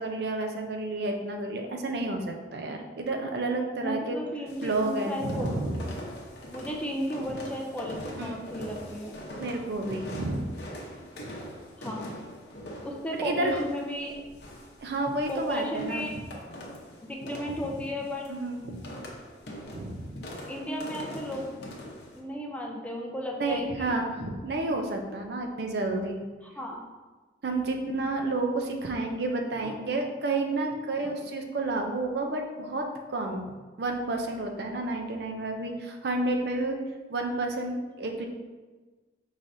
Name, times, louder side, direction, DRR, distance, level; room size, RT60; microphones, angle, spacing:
voice 1, 0.0-4.2 4.6-5.9 8.2-8.4 9.4-10.5 13.2-13.6 14.8-16.2 18.3-18.8 19.7-20.2 23.4-26.2 27.4-33.5 33.8-36.8 37.1-38.3, right 2 dB, 65° right, 3 dB, 0.5 m, -30 dB
voice 2, 3.8-5.9 6.5-9.1 11.8-12.1 12.8-14.2 15.3-16.1 17.0-18.3 20.5-21.5 22.1-24.0 26.4-26.9 29.6-29.9 31.0-31.1, left 1 dB, 10° left, 0 dB, 0.4 m, -34 dB
sound 1, 4.5-22.2, left 1 dB, 70° left, 0.8 m, -42 dB
5.5 x 3.2 x 2.6 m, 1.3 s
head